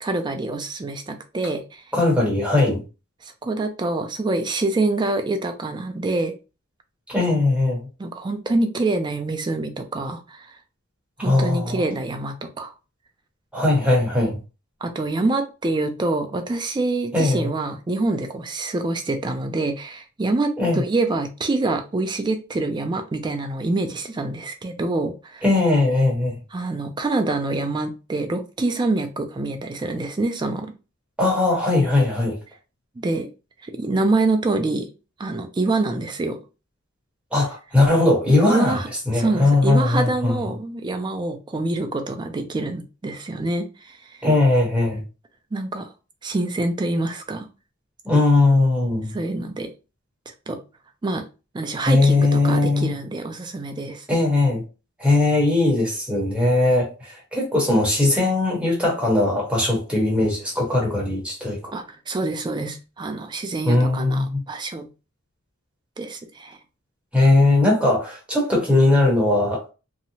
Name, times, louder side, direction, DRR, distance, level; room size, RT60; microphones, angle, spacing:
voice 1, 0.0-1.8 3.2-6.3 8.0-10.6 11.2-12.7 14.8-25.4 26.5-30.7 33.0-33.3 33.6-34.9 35.2-36.4 38.4-38.9 39.1-44.2 45.5-45.9 46.2-47.5 49.1-49.7 50.5-50.6 51.0-51.2 51.5-54.0 61.7-64.9 66.0-66.6, right 2 dB, 20° right, 0.3 m, -26 dB
voice 2, 1.9-2.8 7.1-7.8 11.2-11.8 13.5-14.4 17.1-17.5 20.6-20.8 25.4-26.4 31.2-32.4 37.3-38.8 39.1-40.3 44.2-45.0 48.0-49.2 51.8-52.9 54.1-54.6 55.0-61.8 63.6-64.4 67.1-69.7, left 2 dB, 5° right, 1.0 m, -19 dB
2.7 x 2.0 x 2.7 m
head